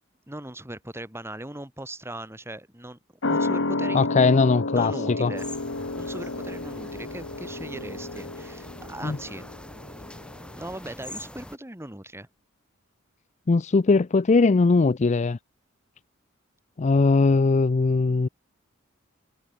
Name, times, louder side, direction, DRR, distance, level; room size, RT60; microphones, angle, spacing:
voice 1, 0.3-4.1 4.7-5.5 6.0-9.4 10.5-12.3, right 1 dB, 10° right, 4.5 m, -39 dB
sound 1, 3.2-10.3 10.6-10.7, left 3 dB, 65° left, 1.6 m, -30 dB
voice 2, 3.9-4.9 5.2-5.3 9.0-9.2 13.5-15.4 16.8-18.3, left 3 dB, 35° left, 0.5 m, -20 dB
sound 2, 5.3-11.6, left 1 dB, 5° left, 1.2 m, -43 dB
head